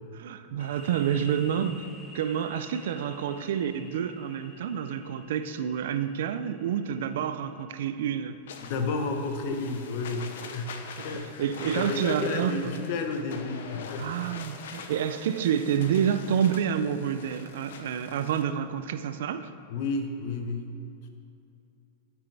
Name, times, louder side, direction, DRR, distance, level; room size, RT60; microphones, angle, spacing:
voice 1, 0.1-1.9 2.1-8.4 11.0-12.7 14.0-19.5, right 8 dB, 75° right, 11 dB, 0.4 m, -28 dB
sound 1, 0.6-8.1, left 2 dB, 25° left, 0.9 m, -50 dB
sound 2, 8.5-18.4, left 5 dB, 80° left, 0.7 m, -43 dB
voice 2, 8.6-10.8 11.0-14.1 19.7-20.7, left 3 dB, 55° left, 5 dB, 0.9 m, -32 dB
12.0 x 6.0 x 3.4 m, 2.6 s
supercardioid pair, 135°, 0 cm